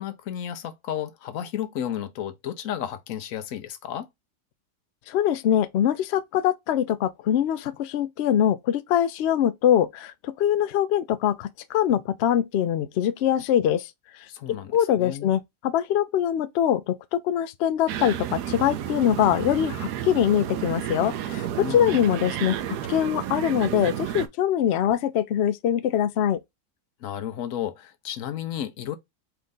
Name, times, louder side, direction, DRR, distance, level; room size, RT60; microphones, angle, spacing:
voice 1, 0.0-4.1 14.3-14.7 15.0-15.3 21.6-22.1 27.0-29.0, left 10 dB, 65° left, 1.0 m, -32 dB
voice 2, 5.1-13.9 14.5-22.6 22.9-26.4, left 10 dB, 85° left, 0.5 m, -23 dB
sound 1, 17.9-24.3, right 11 dB, 85° right, 1.2 m, -31 dB
4.5 x 2.6 x 3.7 m
omnidirectional pair, 1.7 m